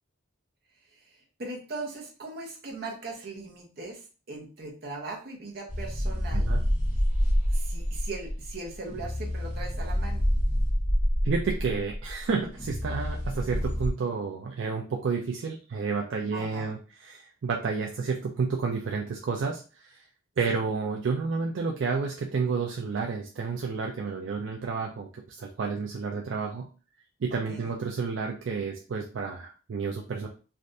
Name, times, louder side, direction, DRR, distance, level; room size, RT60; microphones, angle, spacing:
voice 1, 0.9-6.5 7.5-10.2 16.3-16.7 20.5-20.6 27.5-27.7, right 3 dB, 50° right, -1 dB, 0.8 m, -39 dB
sound 1, 5.7-13.9, equal, 35° left, 1.2 m, -27 dB
voice 2, 6.3-6.6 11.2-20.0 20.4-26.7 27.2-30.3, right 5 dB, 65° right, 0 dB, 0.4 m, -30 dB
3.3 x 2.5 x 2.6 m, 0.36 s
head